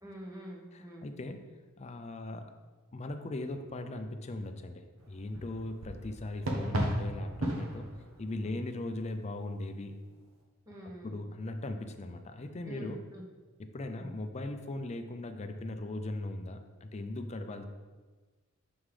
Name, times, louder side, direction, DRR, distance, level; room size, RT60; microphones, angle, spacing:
voice 1, 0.0-1.1 8.4-8.6 10.7-11.2 12.6-13.2 14.0-14.1, equal, 15° right, -3 dB, 1.0 m, -46 dB
voice 2, 1.0-1.5 1.8-2.5 2.9-7.9 8.2-10.0 11.0-13.0 13.7-17.6, left 2 dB, 30° left, 7 dB, 0.4 m, -39 dB
sound 1, 5.0-9.1, right 1 dB, 80° right, 1.0 m, -35 dB
6.1 x 5.6 x 3.3 m, 1.3 s
head